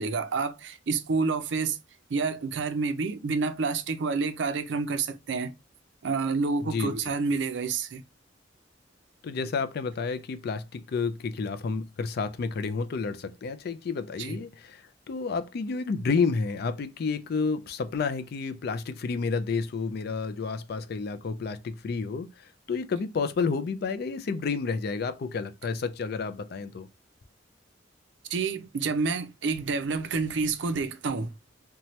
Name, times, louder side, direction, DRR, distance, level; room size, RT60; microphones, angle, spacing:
voice 1, 0.0-1.8 2.1-5.5 6.0-8.0 14.2-14.4 28.3-31.3, right 4 dB, 65° right, 0.5 m, -28 dB
voice 2, 6.6-6.9 9.2-26.9, left 4 dB, 55° left, 0.4 m, -30 dB
2.8 x 2.2 x 3.0 m
head